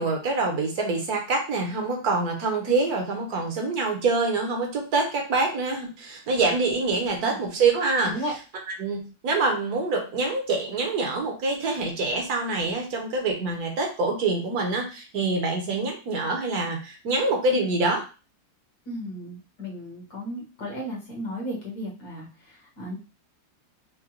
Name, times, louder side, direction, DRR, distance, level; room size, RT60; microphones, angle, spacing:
voice 1, 0.0-8.2 8.8-18.0, right 3 dB, 70° right, 2 dB, 1.4 m, -25 dB
voice 2, 18.9-23.0, equal, 70° left, -2 dB, 1.8 m, -35 dB
5.1 x 2.2 x 2.9 m, 0.33 s
omnidirectional pair, 1.7 m